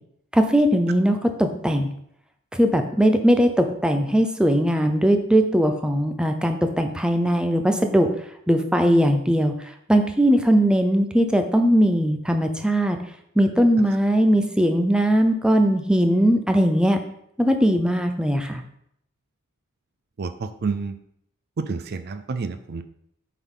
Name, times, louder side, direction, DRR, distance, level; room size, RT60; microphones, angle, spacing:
voice 1, 0.3-1.9 2.5-8.1 8.5-9.5 9.9-13.0 13.4-17.0 17.4-18.6, equal, 5° right, 5 dB, 0.6 m, -19 dB
voice 2, 20.2-20.9 21.6-22.8, right 4 dB, 50° right, 10 dB, 0.5 m, -29 dB
8.0 x 4.0 x 5.5 m, 0.72 s
head